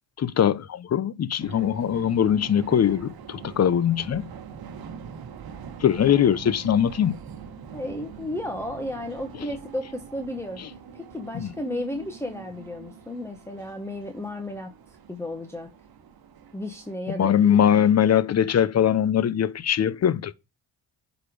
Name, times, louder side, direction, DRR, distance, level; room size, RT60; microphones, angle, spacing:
voice 1, 0.2-4.3 5.8-7.2 11.3-11.5 17.2-20.3, left 9 dB, 40° left, 0.6 m, -21 dB
sound 1, 1.4-16.9, right 7 dB, 60° right, 1.2 m, -43 dB
voice 2, 7.7-10.6 10.9-14.7 15.1-15.7 16.5-17.6, left 1 dB, 5° left, 1.0 m, -33 dB
8.3 x 4.1 x 4.8 m
cardioid pair, 90°, 40 cm